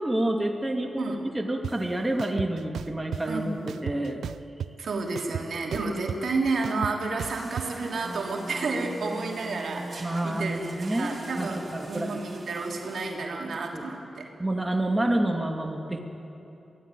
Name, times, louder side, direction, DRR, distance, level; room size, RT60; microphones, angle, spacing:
voice 1, 0.0-3.5 3.8-4.2 10.0-12.1 13.7-13.8 14.4-16.0, right 1 dB, 15° right, 2 dB, 2.4 m, -28 dB
sound 1, 1.6-1.7 2.2-3.2 3.7-4.8 5.1-7.7, right 8 dB, 90° right, 0.4 m, -34 dB
voice 2, 3.3-3.7 4.8-14.3, right 3 dB, 70° right, 0 dB, 3.3 m, -31 dB
sound 2, 7.2-13.1, right 2 dB, 55° right, 4.3 m, -41 dB
23.0 x 16.0 x 9.2 m, 3.0 s
cardioid pair, 65°, 0 cm